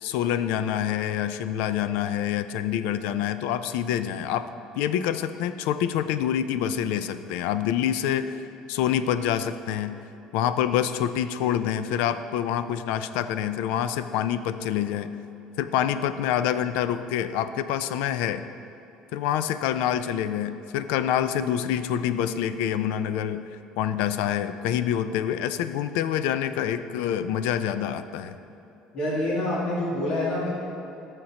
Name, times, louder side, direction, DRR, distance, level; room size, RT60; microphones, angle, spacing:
voice 1, 0.0-4.5 4.8-10.0 10.3-15.1 15.6-18.4 19.1-23.5 23.8-28.4, left 10 dB, 90° left, 12 dB, 0.4 m, -26 dB
voice 2, 28.9-30.5, left 1 dB, 50° left, -6 dB, 1.8 m, -26 dB
14.0 x 6.5 x 2.9 m, 2.9 s
cardioid pair, 150°, 2 cm